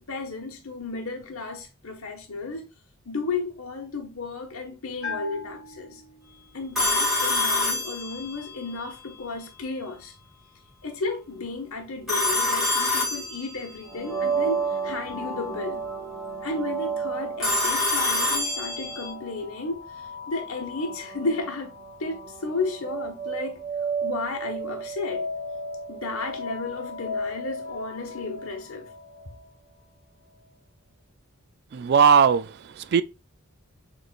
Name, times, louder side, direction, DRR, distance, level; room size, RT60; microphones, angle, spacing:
voice 1, 0.0-2.6 3.0-6.0 6.5-10.1 10.8-15.8 16.4-19.8 20.3-21.7 22.0-23.6 24.0-25.2 25.9-28.9, left 3 dB, 85° left, 1.3 m, -33 dB
Bell, 5.0-6.6, left 4 dB, 70° left, 1.8 m, -38 dB
Telephone, 6.7-8.5 12.1-13.8 17.4-19.1, left 2 dB, ahead, 1.9 m, -25 dB
sound 1, 13.9-29.5, right 3 dB, 15° left, 2.1 m, -33 dB
voice 2, 31.7-33.0, right 6 dB, 50° right, 0.3 m, -19 dB
6.5 x 3.2 x 2.4 m
head